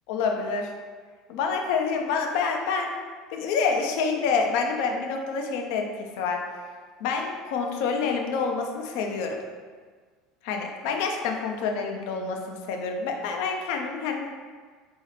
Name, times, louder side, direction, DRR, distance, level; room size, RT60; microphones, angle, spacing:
voice 1, 0.1-0.7 1.3-3.0 3.3-6.4 7.0-9.4 10.4-14.3, left 5 dB, 75° left, 3 dB, 0.5 m, -27 dB
4.0 x 2.9 x 4.0 m, 1.5 s
supercardioid pair, 105°, 0 cm